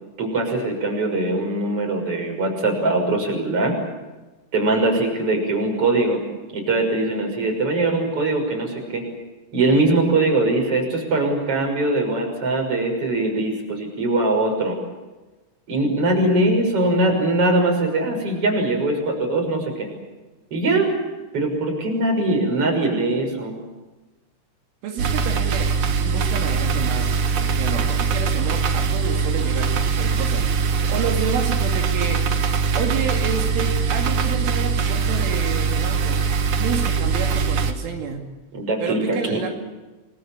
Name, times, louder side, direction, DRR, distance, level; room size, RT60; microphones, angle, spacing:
voice 1, 0.2-3.7 4.5-6.2 6.5-9.1 9.5-14.8 15.7-19.9 20.5-20.9 21.3-23.6 38.5-39.5, right 2 dB, 30° right, 2 dB, 6.8 m, -21 dB
voice 2, 24.8-25.7 26.0-32.3 32.7-36.2 36.6-38.2 38.8-39.5, right 6 dB, 80° right, 2 dB, 5.0 m, -30 dB
sound 1, 25.0-37.7, right 5 dB, 55° right, 2.3 m, -22 dB
29.5 x 22.0 x 7.4 m, 1.2 s
omnidirectional pair, 5.5 m